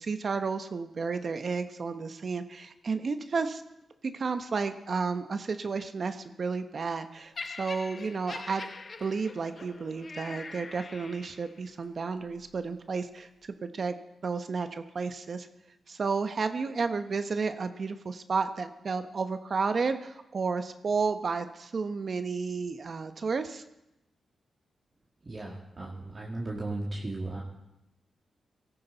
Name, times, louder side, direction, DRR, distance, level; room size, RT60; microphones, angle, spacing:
voice 1, 0.0-3.6 4.0-14.0 14.2-15.5 15.9-23.6, right 4 dB, 55° right, 9 dB, 1.0 m, -32 dB
Laughter, 7.4-11.6 12.4-12.6, left 4 dB, 45° left, 0.9 m, -43 dB
voice 2, 25.2-27.4, right 2 dB, 35° right, -3 dB, 2.2 m, -36 dB
17.5 x 14.0 x 4.0 m, 0.89 s
cardioid pair, 75°, 0 cm